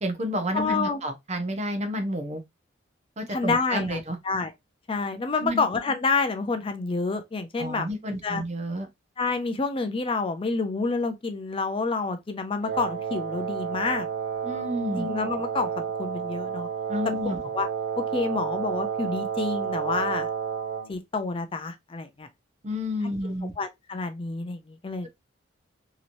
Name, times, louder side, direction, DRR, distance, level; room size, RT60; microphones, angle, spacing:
voice 1, 0.0-2.4 3.2-4.2 5.4-5.7 7.6-8.9 14.4-15.1 16.9-17.4 22.6-23.5, equal, 35° right, 0.7 m, -30 dB
voice 2, 0.5-1.0 3.3-4.5 4.9-8.4 9.2-14.1 14.9-16.7 17.3-17.7 18.0-20.3 20.9-22.3 23.2-25.1, left 4 dB, 30° left, 0.4 m, -28 dB
Wind instrument woodwind instrument, 12.6-20.9, right 7 dB, 65° right, 0.8 m, -31 dB
3.0 x 2.8 x 2.5 m
head